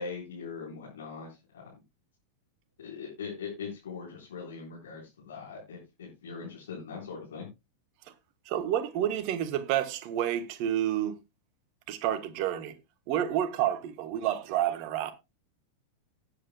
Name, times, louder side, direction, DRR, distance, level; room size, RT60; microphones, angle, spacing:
voice 1, 0.0-1.7 2.8-7.5, left 5 dB, 65° left, 4.2 m, -41 dB
voice 2, 8.5-11.2 11.9-12.7 13.1-15.1, right 11 dB, 45° right, 1.3 m, -29 dB
19.0 x 8.2 x 2.2 m
figure-of-eight pair, 90°, 0 cm